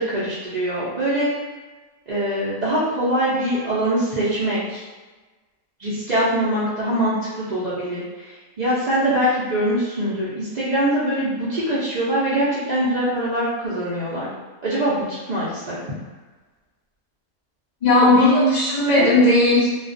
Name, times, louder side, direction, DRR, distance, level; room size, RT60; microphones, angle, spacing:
voice 1, 0.0-1.3 2.1-4.8 5.8-8.0 8.6-14.3 14.6-15.8 18.0-18.5 18.9-19.1, right 1 dB, 80° right, -10 dB, 0.4 m, -23 dB
voice 2, 17.8-19.7, left 2 dB, 75° left, -8 dB, 0.4 m, -17 dB
2.4 x 2.2 x 2.5 m, 1.2 s
omnidirectional pair, 1.6 m